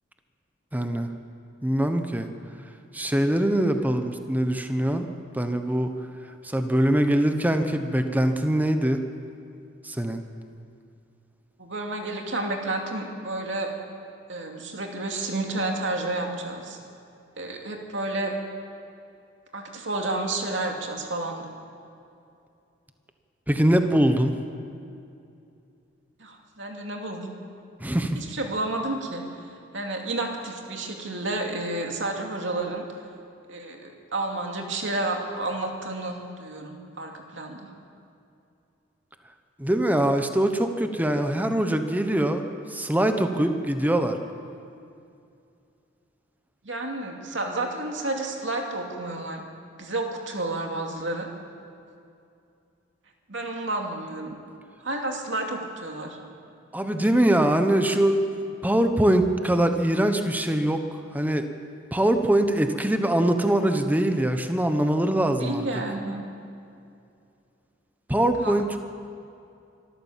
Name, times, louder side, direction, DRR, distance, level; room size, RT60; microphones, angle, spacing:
voice 1, 0.7-1.1 1.6-2.3 2.9-5.1 5.3-5.9 6.4-9.0 9.8-10.2 23.5-24.3 27.8-28.2 39.6-42.4 42.7-44.2 56.7-60.8 61.1-61.5 61.9-65.7 68.1-68.8, right 1 dB, 10° right, 7 dB, 1.1 m, -23 dB
voice 2, 11.6-13.7 14.3-16.8 17.4-18.3 19.5-21.5 26.2-27.3 28.1-29.5 29.7-32.9 33.5-37.7 46.6-49.4 49.8-51.3 53.3-54.4 54.8-56.2 65.2-66.3 68.4-68.5, right 2 dB, 70° right, 2 dB, 2.6 m, -31 dB
25.5 x 14.0 x 7.5 m, 2.5 s
head